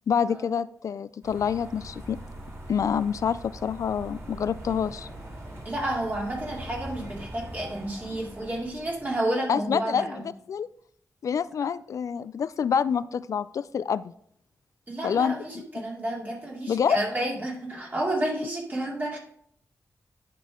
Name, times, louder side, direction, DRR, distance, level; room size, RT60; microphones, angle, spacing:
voice 1, 0.1-2.2 2.7-5.1 9.5-10.2 10.5-10.7 11.2-14.1 15.0-15.4 16.7-17.0, left 7 dB, 65° left, 16 dB, 0.3 m, -27 dB
sound 1, 1.2-9.3, right 1 dB, 50° right, 3.0 m, -42 dB
voice 2, 5.6-10.3 14.9-19.2, right 1 dB, 30° right, -3 dB, 2.5 m, -31 dB
9.4 x 5.6 x 3.6 m, 0.66 s
wide cardioid pair, 110°, 6 cm